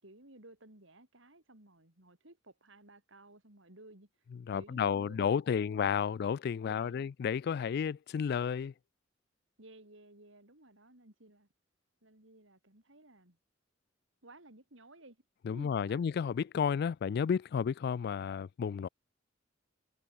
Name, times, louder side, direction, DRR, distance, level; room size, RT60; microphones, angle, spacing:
voice 1, 0.0-4.1 4.5-5.8 6.6-7.1 9.6-11.5 12.0-13.4 14.2-15.2 15.5-16.0, right 2 dB, 70° right, 5.2 m, -56 dB
voice 2, 4.5-8.7 15.5-18.9, left 7 dB, 55° left, 0.3 m, -32 dB
head